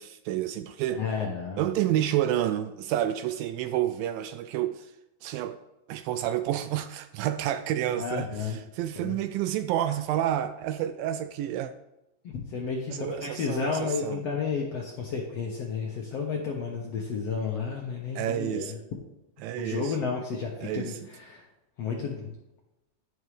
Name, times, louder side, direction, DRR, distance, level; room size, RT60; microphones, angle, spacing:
voice 1, 0.0-1.0 1.6-4.9 5.2-5.6 5.9-11.7 12.9-14.2 18.2-18.7 19.4-20.0 20.6-21.0, right 12 dB, 80° right, 11 dB, 2.1 m, -29 dB
voice 2, 1.0-1.7 8.0-8.6 9.0-9.2 12.2-18.8 19.6-21.4 21.8-22.3, left 5 dB, 65° left, -1 dB, 1.6 m, -32 dB
11.0 x 11.0 x 3.3 m, 0.94 s
omnidirectional pair, 4.4 m